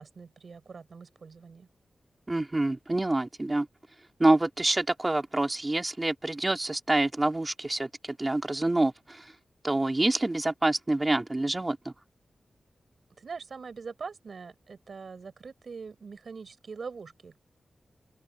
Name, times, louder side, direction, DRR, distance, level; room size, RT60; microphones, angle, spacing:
voice 1, 0.0-1.7 13.2-17.4, right 5 dB, 65° right, 4.9 m, -43 dB
voice 2, 2.3-3.7 4.2-7.9 8.2-9.3 9.6-11.9, right 2 dB, 25° right, 2.6 m, -26 dB
open air
wide cardioid pair, 75°, 0 cm